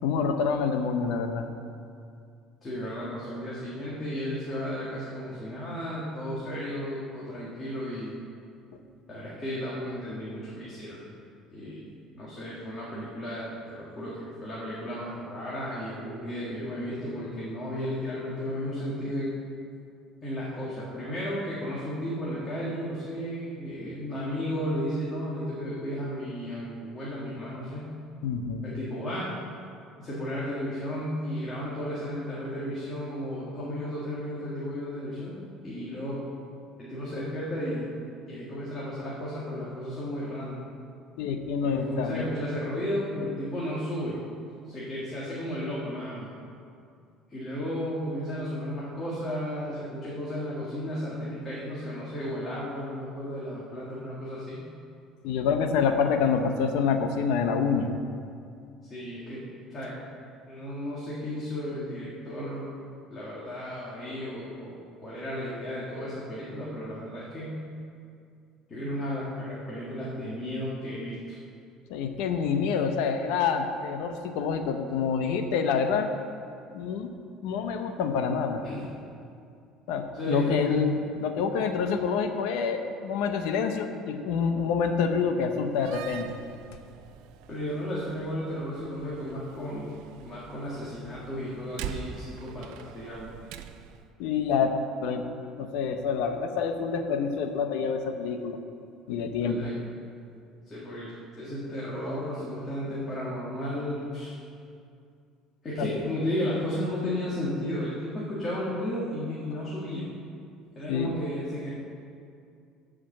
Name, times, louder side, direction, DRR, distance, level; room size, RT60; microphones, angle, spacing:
voice 1, 0.0-1.5 28.2-28.7 41.2-42.3 55.2-57.9 71.9-76.1 76.7-77.1 77.4-78.6 79.9-86.4 94.2-94.8 95.0-95.3 95.6-98.6 99.1-99.7 105.8-105.9 110.9-111.1, left 6 dB, 80° left, 6 dB, 0.9 m, -27 dB
voice 2, 2.6-8.1 9.1-11.0 11.5-11.8 12.1-19.3 20.2-27.9 28.6-29.3 30.0-36.2 36.8-37.9 38.3-40.6 41.6-44.2 44.7-46.3 47.3-54.6 58.8-60.0 60.5-62.7 63.1-67.6 68.7-71.4 78.6-78.8 80.1-80.8 87.5-89.9 90.2-93.3 99.4-99.7 100.7-104.4 105.6-110.1 110.8-111.7, equal, 25° left, -7 dB, 2.1 m, -34 dB
Slam, 85.7-94.1, right 8 dB, 75° right, 0.5 m, -44 dB
12.5 x 5.0 x 7.4 m, 2.4 s
cardioid pair, 145°, 0 cm